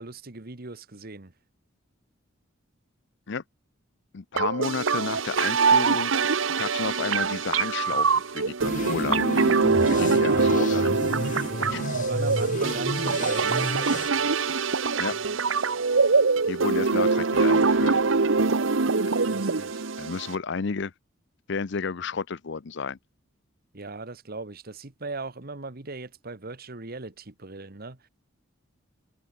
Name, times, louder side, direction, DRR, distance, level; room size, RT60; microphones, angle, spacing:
voice 1, 0.0-1.3 9.7-10.8 11.9-13.8 19.3-19.8 23.7-28.1, right 3 dB, 50° right, 1.5 m, -38 dB
voice 2, 4.1-6.1 6.6-9.2 9.7-11.2 11.7-11.9 15.0-15.2 16.5-17.9 20.0-20.9 21.5-23.0, left 5 dB, 60° left, 0.6 m, -32 dB
sound 1, 4.4-20.4, right 4 dB, 75° right, 1.0 m, -24 dB
sound 2, 7.9-11.1 11.5-14.7 15.1-16.5, equal, 20° right, 5.9 m, -60 dB
sound 3, 8.6-14.1, left 2 dB, 40° left, 1.5 m, -32 dB
head